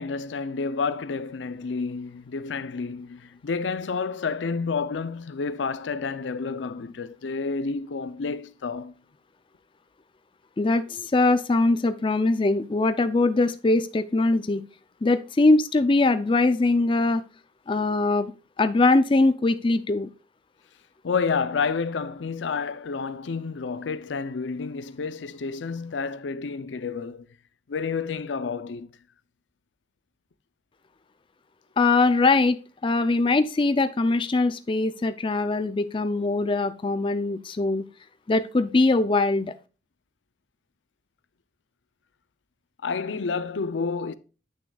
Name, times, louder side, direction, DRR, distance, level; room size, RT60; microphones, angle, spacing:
voice 1, 0.0-8.9 21.0-27.3 27.7-28.9 42.8-44.1, left 5 dB, 85° left, 0.5 m, -30 dB
voice 2, 10.6-14.6 15.0-17.2 17.7-18.3 18.6-20.1 31.8-32.6 32.8-37.8 38.3-39.5, left 3 dB, 30° left, 0.4 m, -22 dB
8.6 x 6.2 x 2.3 m
head